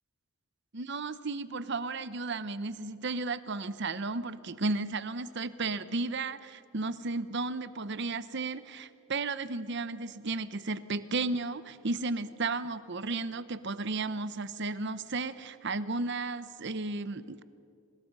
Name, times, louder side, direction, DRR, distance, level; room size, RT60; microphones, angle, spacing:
voice 1, 0.7-17.4, right 3 dB, 55° right, 14 dB, 0.8 m, -34 dB
25.5 x 20.0 x 5.4 m, 2.4 s
head